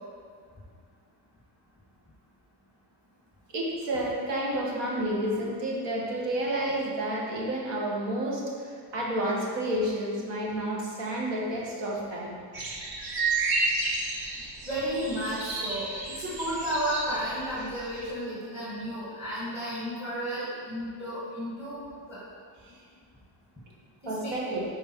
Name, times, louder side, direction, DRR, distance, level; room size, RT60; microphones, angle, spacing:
voice 1, 3.5-12.4 24.1-24.6, right 1 dB, 80° right, -3 dB, 1.9 m, -30 dB
sound 1, 12.5-18.1, right 3 dB, 55° right, 1.2 m, -31 dB
voice 2, 14.6-21.8 22.1-22.2 24.0-24.6, equal, 5° right, -8 dB, 2.0 m, -33 dB
8.8 x 4.5 x 4.7 m, 2.1 s
cardioid pair, 135°, 43 cm